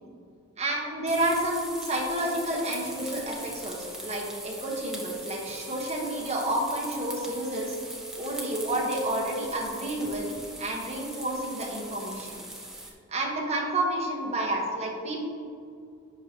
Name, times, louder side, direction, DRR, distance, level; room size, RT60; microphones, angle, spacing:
voice 1, 0.6-7.8 8.2-10.2 10.6-12.4 13.1-15.3, right 1 dB, 30° right, -2 dB, 1.1 m, -30 dB
sound 1, 1.1-12.9, right 1 dB, ahead, 0.5 m, -41 dB
9.9 x 5.7 x 2.9 m, 2.5 s
head